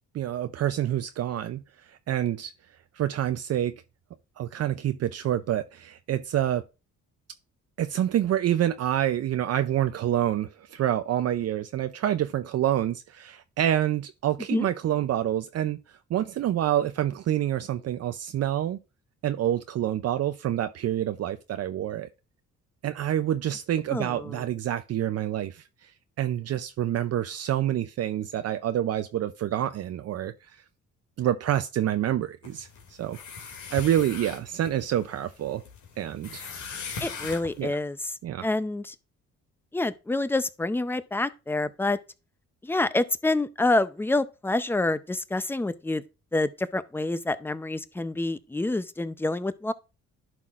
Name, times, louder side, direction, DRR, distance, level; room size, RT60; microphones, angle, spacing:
voice 1, 0.1-2.5 2.9-3.7 4.4-6.6 7.8-15.8 16.1-18.8 19.2-22.1 22.8-25.9 26.2-30.5 31.2-33.2 33.7-35.6 36.0-36.5 37.6-37.7 38.2-38.5, right 11 dB, 55° right, 0.5 m, -27 dB
voice 2, 23.9-24.4 37.0-38.0 38.4-38.9 39.7-42.0 42.6-46.0 46.3-49.7, left 2 dB, 5° left, 0.5 m, -27 dB
sound 1, 32.4-37.6, left 5 dB, 70° left, 2.5 m, -40 dB
11.0 x 5.9 x 2.5 m
cardioid pair, 90°, 30 cm